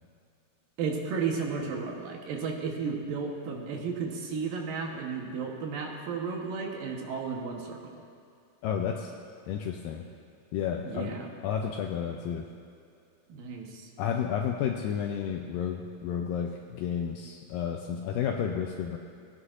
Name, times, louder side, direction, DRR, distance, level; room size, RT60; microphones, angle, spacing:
voice 1, 0.8-7.8 10.8-11.3 13.3-13.9, right 5 dB, 70° right, 1 dB, 2.7 m, -33 dB
voice 2, 8.6-9.1 9.5-10.0 10.5-11.1 11.4-12.5 14.0-19.0, left 8 dB, 80° left, 2 dB, 2.1 m, -31 dB
19.5 x 9.7 x 2.5 m, 2.5 s
omnidirectional pair, 4.3 m